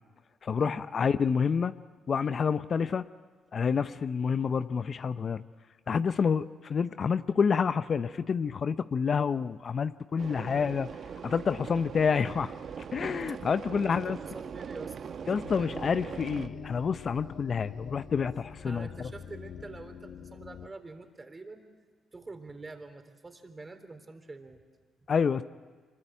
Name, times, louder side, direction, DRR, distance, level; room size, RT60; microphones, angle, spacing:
voice 1, 0.4-1.7 2.1-3.0 3.5-5.4 5.9-10.9 11.2-12.5 12.8-14.2 15.3-19.1 25.1-25.4, left 6 dB, 50° left, 13 dB, 0.7 m, -28 dB
sound 1, 10.2-16.5, right 7 dB, 60° right, 1.1 m, -41 dB
voice 2, 13.7-15.8 18.6-21.7 22.1-24.6, right 3 dB, 30° right, 7 dB, 3.6 m, -46 dB
sound 2, 15.4-20.7, left 6 dB, 70° left, 1.5 m, -45 dB
25.0 x 22.5 x 9.0 m, 1.5 s
hypercardioid pair, 50°, 0 cm